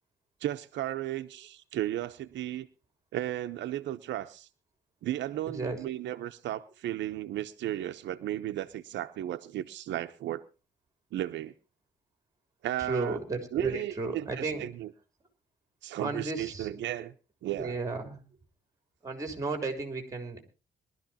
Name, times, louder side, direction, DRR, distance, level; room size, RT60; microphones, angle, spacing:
voice 1, 0.4-2.7 3.1-4.5 5.0-10.4 11.1-11.5 12.6-13.2 13.5-14.9 15.8-17.1 17.4-17.8, right 13 dB, 80° right, 0.9 m, -34 dB
voice 2, 5.5-5.8 12.8-14.6 16.0-16.8 17.5-18.2 19.0-20.4, right 3 dB, 20° right, 3.5 m, -34 dB
22.0 x 13.0 x 2.9 m
cardioid pair, 165°, 18 cm